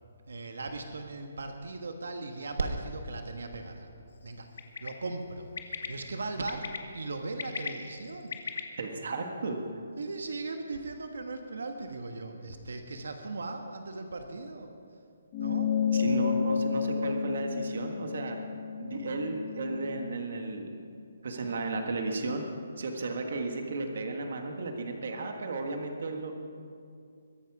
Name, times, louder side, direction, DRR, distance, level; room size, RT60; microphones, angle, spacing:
voice 1, 0.3-3.9 4.2-4.5 4.8-5.5 5.9-6.7 6.9-8.4 10.0-14.7 15.4-15.7, right 3 dB, 75° right, 5 dB, 1.4 m, -37 dB
Bird, 4.6-4.9 5.6-5.9 6.5-6.8 7.2-8.6, left 5 dB, 55° left, 1.3 m, -36 dB
voice 2, 8.8-9.6 15.9-18.4 18.8-20.7 21.2-22.4 22.8-26.3, right 3 dB, 45° right, 4 dB, 1.6 m, -34 dB
sound 1, 15.3-20.1, left 6 dB, 15° left, 0.8 m, -31 dB
22.0 x 11.0 x 4.9 m, 2.3 s
hypercardioid pair, 180°, 0 cm